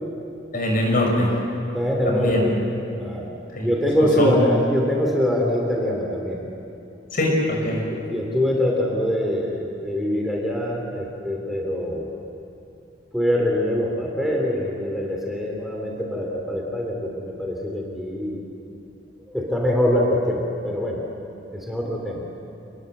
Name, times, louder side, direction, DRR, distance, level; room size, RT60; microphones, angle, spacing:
voice 1, 0.5-1.3 2.0-2.6 3.5-3.7 4.0-4.4 7.1-7.9, left 1 dB, 50° left, 0 dB, 6.4 m, -22 dB
voice 2, 1.7-2.6 3.0-3.3 3.6-6.4 7.9-12.1 13.1-18.4 19.3-21.0 21.5-22.2, equal, ahead, -1 dB, 3.0 m, -24 dB
28.5 x 21.0 x 7.9 m, 2.8 s
head